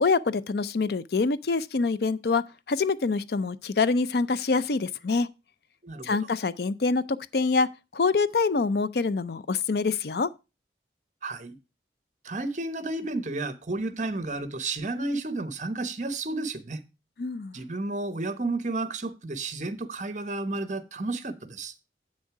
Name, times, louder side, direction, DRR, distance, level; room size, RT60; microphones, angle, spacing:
voice 1, 0.0-5.3 6.0-7.7 7.9-10.3 17.2-17.5, left 4 dB, 65° left, 0.5 m, -25 dB
voice 2, 5.8-6.2 11.2-11.6 12.2-16.8 17.5-21.7, right 2 dB, 45° right, 0.9 m, -32 dB
8.3 x 6.4 x 4.7 m
head